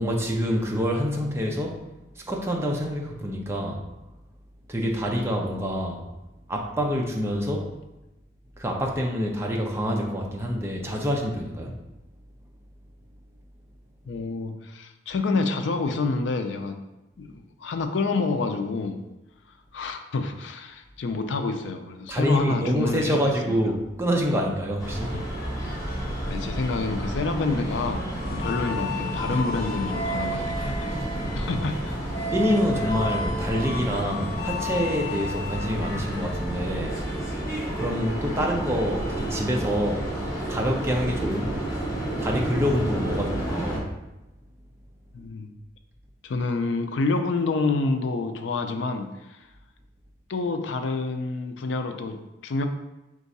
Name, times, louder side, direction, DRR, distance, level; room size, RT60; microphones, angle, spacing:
voice 1, 0.0-1.8 2.2-3.8 4.7-6.0 6.5-7.7 8.6-11.7 22.1-25.1 31.2-31.5 32.3-37.0 37.8-40.1 40.5-41.5 42.2-43.8, equal, 15° right, 0 dB, 0.5 m, -26 dB
voice 2, 14.1-16.8 17.2-19.0 19.7-23.6 25.1-25.2 26.3-31.0 31.3-32.1 38.3-38.5 45.1-45.5 46.2-49.4 50.3-52.7, left 3 dB, 80° left, 6 dB, 0.4 m, -28 dB
sound 1, 24.8-43.8, right 1 dB, 20° left, 1.3 m, -31 dB
sound 2, 27.2-34.5, equal, 30° right, 1.1 m, -38 dB
sound 3, 28.2-37.8, left 1 dB, 55° left, 0.9 m, -34 dB
4.5 x 2.4 x 4.0 m, 0.99 s
head